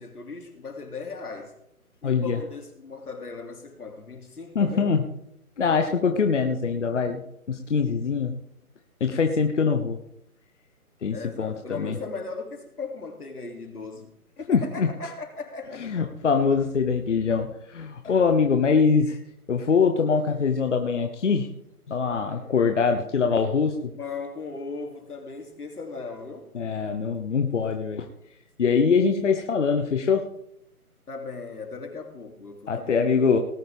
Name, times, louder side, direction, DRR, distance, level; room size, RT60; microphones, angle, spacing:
voice 1, 0.0-1.6 2.0-4.9 11.1-14.1 14.4-15.9 23.7-26.5 31.1-33.4, left 4 dB, 80° left, 3.0 m, -37 dB
voice 2, 2.0-2.4 4.5-5.0 5.6-7.2 7.5-8.3 9.0-10.0 11.0-11.9 14.5-14.9 15.8-19.2 19.5-21.5 21.9-23.8 26.5-28.1 28.6-30.2 32.7-33.4, left 5 dB, 50° left, 1.1 m, -23 dB
19.0 x 9.0 x 3.6 m
hypercardioid pair, 160°, 45 cm